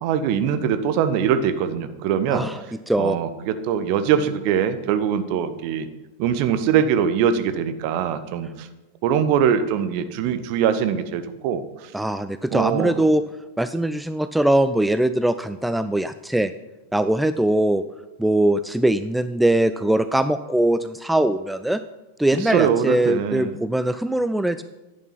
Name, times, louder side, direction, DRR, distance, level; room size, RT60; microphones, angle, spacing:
voice 1, 0.0-2.4 3.0-5.9 6.2-8.7 9.0-11.6 12.5-13.0 22.4-23.6, right 8 dB, 45° right, 11 dB, 0.8 m, -22 dB
voice 2, 2.9-3.2 11.9-13.2 13.6-16.5 16.9-17.8 18.2-21.8 22.2-24.6, right 1 dB, 5° right, 11 dB, 0.4 m, -21 dB
11.0 x 8.5 x 5.8 m, 1.1 s
figure-of-eight pair, 90°, 0 cm